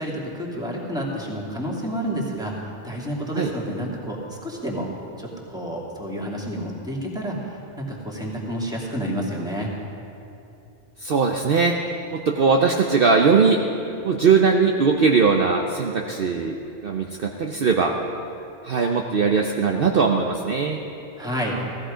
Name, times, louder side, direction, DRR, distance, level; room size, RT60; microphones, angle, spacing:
voice 1, 0.0-2.5 2.8-4.9 5.2-9.7 21.2-21.6, equal, 5° right, -3 dB, 2.3 m, -29 dB
voice 2, 11.0-11.8 12.1-13.6 14.0-16.6 16.8-17.9 18.6-20.8, right 5 dB, 55° right, 2 dB, 0.9 m, -20 dB
16.5 x 14.5 x 5.1 m, 2.7 s
omnidirectional pair, 1.3 m